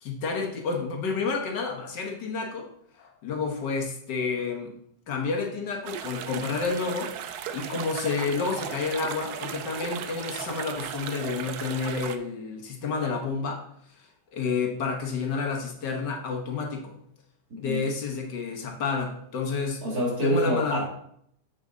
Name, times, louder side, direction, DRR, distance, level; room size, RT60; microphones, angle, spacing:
voice 1, 0.0-2.7 3.0-4.7 5.1-7.1 7.5-13.6 14.3-17.0 17.6-19.8 20.2-20.8, left 4 dB, 75° left, 2 dB, 1.8 m, -30 dB
sound 1, 5.9-12.2, right 9 dB, 70° right, 1.1 m, -36 dB
voice 2, 19.8-20.9, right 1 dB, 55° right, -2 dB, 2.6 m, -26 dB
7.5 x 6.1 x 3.9 m, 0.70 s
omnidirectional pair, 1.9 m